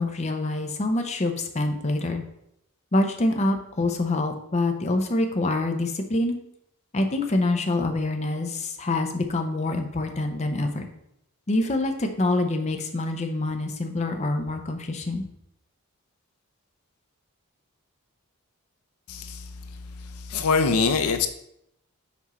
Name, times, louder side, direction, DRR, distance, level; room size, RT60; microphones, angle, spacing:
voice 1, 0.0-2.2 2.9-6.4 6.9-10.8 11.5-15.2, left 2 dB, 30° left, 5 dB, 0.6 m, -26 dB
voice 2, 19.1-19.5 20.1-21.3, left 4 dB, 75° left, 8 dB, 0.5 m, -23 dB
6.1 x 4.4 x 4.2 m, 0.77 s
head